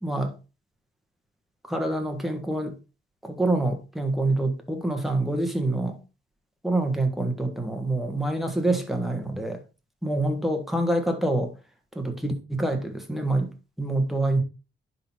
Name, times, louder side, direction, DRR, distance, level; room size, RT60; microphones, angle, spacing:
voice 1, 0.0-0.4 1.7-2.8 3.2-6.0 6.6-9.6 10.0-11.5 12.0-13.5 13.8-14.4, right 2 dB, ahead, 1.6 m, -26 dB
10.0 x 4.1 x 4.4 m
cardioid pair, 110°, 20 cm